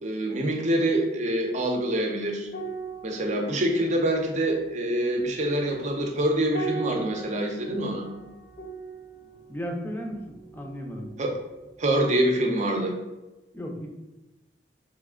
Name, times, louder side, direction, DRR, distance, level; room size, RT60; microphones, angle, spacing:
voice 1, 0.0-2.5 3.0-8.1 11.2-11.4 11.8-12.9, right 1 dB, 45° right, 2 dB, 0.6 m, -25 dB
sound 1, 2.5-11.2 11.5-11.7, right 4 dB, 60° left, 0.6 m, -40 dB
voice 2, 9.5-11.1 13.5-13.9, equal, 10° left, 1 dB, 0.5 m, -35 dB
3.2 x 3.1 x 3.7 m, 1.1 s
head